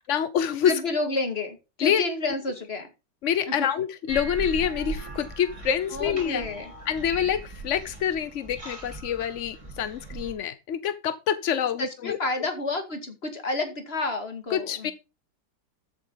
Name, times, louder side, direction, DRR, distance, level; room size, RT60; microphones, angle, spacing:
voice 1, 0.1-0.7 1.8-2.0 3.2-6.4 6.9-12.2 14.5-14.9, left 9 dB, 60° left, 13 dB, 0.7 m, -26 dB
voice 2, 0.6-2.9 3.5-3.7 5.9-6.7 11.8-14.9, left 2 dB, 30° left, 6 dB, 2.4 m, -30 dB
sound 1, 4.1-10.3, right 3 dB, 15° right, 4.0 m, -38 dB
13.5 x 8.7 x 4.0 m, 0.29 s
omnidirectional pair, 2.1 m